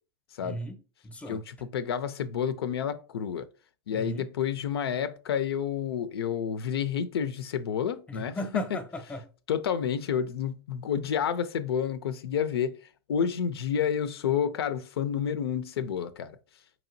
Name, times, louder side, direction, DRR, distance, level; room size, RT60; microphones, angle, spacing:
voice 1, 0.4-1.4 3.9-4.3 8.1-9.2, left 1 dB, 10° left, 0.6 m, -37 dB
voice 2, 1.3-3.5 3.9-8.8 9.5-12.8 13.1-16.4, left 8 dB, 85° left, 0.4 m, -30 dB
4.7 x 2.9 x 2.5 m
hypercardioid pair, 110°, 13 cm